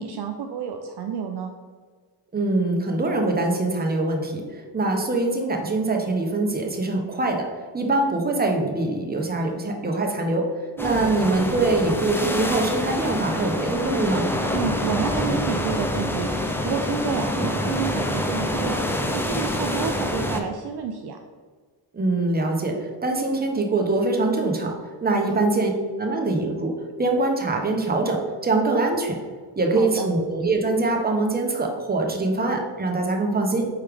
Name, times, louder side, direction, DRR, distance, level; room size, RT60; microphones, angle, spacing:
voice 1, 0.0-1.5 10.8-11.3 14.5-21.2 25.1-25.4 29.8-30.1, right 6 dB, 55° right, 4 dB, 0.5 m, -30 dB
voice 2, 2.3-7.5 7.7-10.5 10.8-14.3 21.9-24.8 25.0-29.2 29.6-33.7, right 2 dB, 20° right, 2 dB, 0.9 m, -23 dB
sound 1, 10.8-20.4, left 1 dB, 5° left, 0.4 m, -26 dB
4.5 x 3.3 x 3.5 m, 1.5 s
cardioid pair, 60°, 49 cm